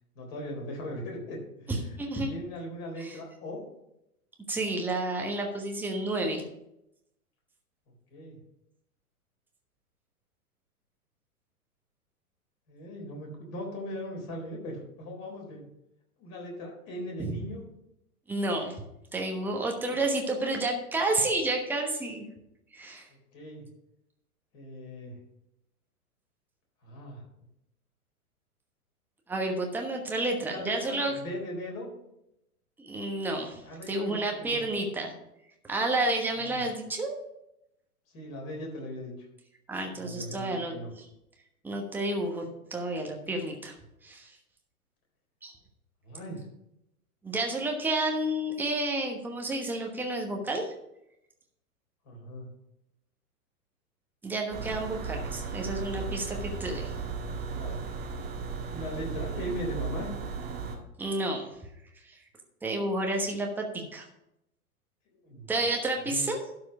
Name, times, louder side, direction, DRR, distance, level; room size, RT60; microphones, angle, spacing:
voice 1, 0.2-1.7 2.3-3.6 8.1-8.4 12.7-15.6 16.2-17.6 19.8-20.0 23.3-23.6 24.5-25.2 26.8-27.3 30.4-31.9 33.6-34.6 36.4-36.6 38.1-39.1 39.9-40.9 46.0-46.4 52.0-52.5 57.6-57.8 58.7-60.1 65.1-65.5 66.0-66.2, left 1 dB, 35° left, -1 dB, 4.0 m, -39 dB
voice 2, 1.7-2.3 3.0-3.2 4.5-6.4 18.3-18.8 19.1-22.3 22.7-23.1 29.3-31.1 32.8-35.1 35.7-37.1 39.7-41.0 41.6-43.7 44.0-44.4 45.4-45.5 47.2-50.7 54.2-56.9 61.0-61.5 62.0-62.2 62.6-64.1 65.5-66.4, right 2 dB, 5° right, 1 dB, 1.1 m, -30 dB
sound 1, 54.5-60.8, right 5 dB, 20° right, 1.6 m, -35 dB
12.0 x 4.8 x 6.0 m, 0.85 s
figure-of-eight pair, 110°, 44 cm